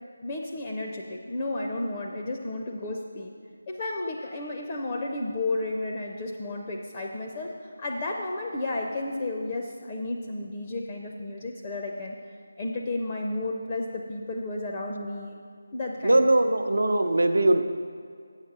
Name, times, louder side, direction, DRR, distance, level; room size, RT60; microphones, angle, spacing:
voice 1, 0.0-3.3 3.7-12.1 12.6-15.4 15.7-16.3, left 2 dB, 25° left, 0 dB, 0.5 m, -32 dB
voice 2, 16.0-17.6, right 1 dB, 85° right, 6 dB, 0.6 m, -21 dB
8.1 x 5.3 x 6.7 m, 2.2 s
figure-of-eight pair, 175°, 0 cm